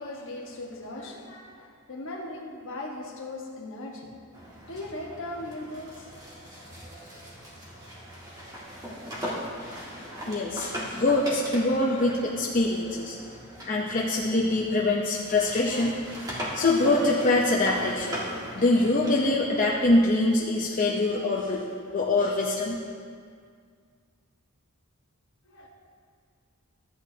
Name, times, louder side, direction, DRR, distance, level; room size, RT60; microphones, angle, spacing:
voice 1, 0.0-6.1 25.4-25.7, left 2 dB, 60° left, -1 dB, 1.3 m, -39 dB
sound 1, 4.3-14.9 15.2-19.6, equal, 15° right, 1.8 m, -39 dB
voice 2, 10.3-13.2 13.7-15.9 16.5-18.2 18.5-22.8, left 2 dB, 35° left, -4 dB, 0.7 m, -24 dB
13.5 x 8.6 x 2.8 m, 2.1 s
head